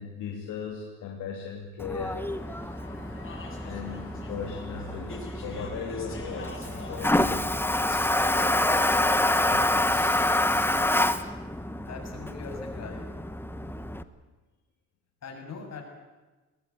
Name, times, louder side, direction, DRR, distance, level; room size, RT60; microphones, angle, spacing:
voice 1, 0.0-2.2 3.6-7.4 9.5-9.6, left 6 dB, 85° left, 0 dB, 3.1 m, -37 dB
Toilet flush, 1.8-14.0, left 1 dB, 5° left, 1.3 m, -27 dB
Speech / Chatter, 2.0-11.4, left 3 dB, 45° left, 7.7 m, -45 dB
voice 2, 11.9-13.1 15.2-15.8, left 5 dB, 60° left, 2 dB, 7.2 m, -41 dB
21.0 x 20.5 x 9.5 m, 1.2 s
cardioid pair, 90°, 30 cm